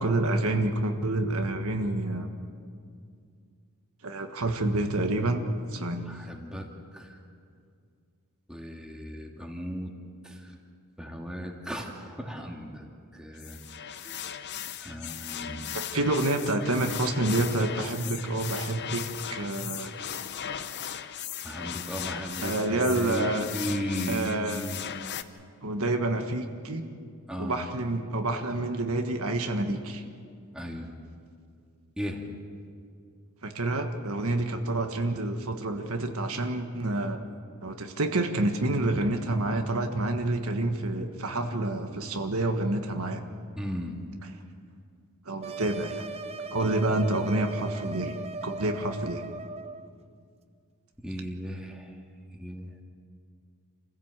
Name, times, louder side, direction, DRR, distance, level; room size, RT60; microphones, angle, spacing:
voice 1, 0.0-2.3 4.0-5.4 5.7-6.0 15.7-19.0 19.3-19.9 22.4-23.5 24.1-24.7 25.6-26.8 27.4-30.0 33.4-37.2 37.6-43.2 44.2-44.3 45.2-46.1 46.5-48.1 48.4-49.2, right 2 dB, 70° right, 5 dB, 1.6 m, -28 dB
voice 2, 5.9-7.2 8.5-9.9 10.2-10.5 11.0-12.9 13.1-14.4 14.8-15.6 21.4-23.3 23.5-24.8 27.3-27.6 30.5-30.9 32.0-32.2 43.6-44.0 46.6-46.7 51.0-51.9 52.3-52.7, equal, 5° right, 0 dB, 2.3 m, -36 dB
sound 1, 13.4-25.2, left 9 dB, 50° left, 0.8 m, -37 dB
sound 2, 45.4-49.9, right 3 dB, 30° right, 0.7 m, -38 dB
27.5 x 16.0 x 7.5 m, 2.2 s
head